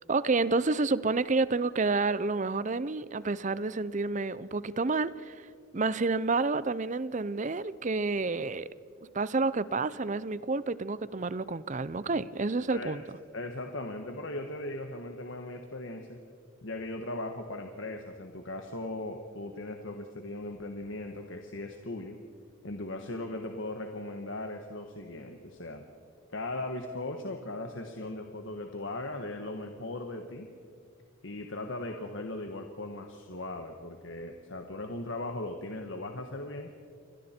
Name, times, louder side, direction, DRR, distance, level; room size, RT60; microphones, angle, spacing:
voice 1, 0.1-5.5 5.7-8.7 9.1-13.0, right 3 dB, 35° right, 17 dB, 0.5 m, -29 dB
voice 2, 12.7-13.0 13.3-16.2 16.6-22.2 22.6-25.8 26.3-30.5 31.2-36.7, left 2 dB, 60° left, 5 dB, 1.3 m, -38 dB
28.0 x 22.5 x 4.4 m, 2.2 s
head